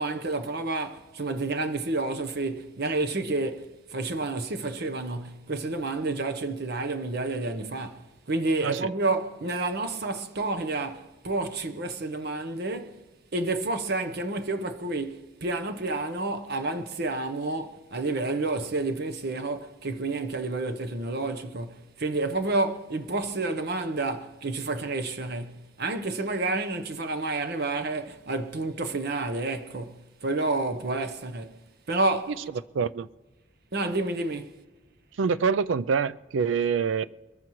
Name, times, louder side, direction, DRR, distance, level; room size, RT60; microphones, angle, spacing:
voice 1, 0.0-13.0 13.3-31.6 31.9-32.3 33.7-34.5, right 2 dB, 55° right, 0.9 m, -30 dB
voice 2, 32.7-33.1 35.2-37.1, right 6 dB, 85° right, 0.4 m, -25 dB
22.5 x 14.5 x 3.1 m
head